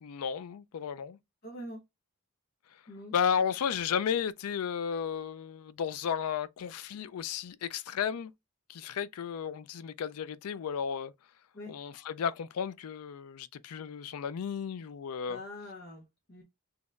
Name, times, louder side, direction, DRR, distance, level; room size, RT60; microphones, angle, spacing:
voice 1, 0.0-1.2 3.1-8.3 8.7-11.1 11.7-15.4, left 7 dB, 85° left, 0.4 m, -33 dB
voice 2, 1.4-1.8 2.9-3.1 11.5-11.8 15.3-16.4, left 1 dB, 45° left, 0.9 m, -44 dB
4.1 x 2.9 x 2.4 m
head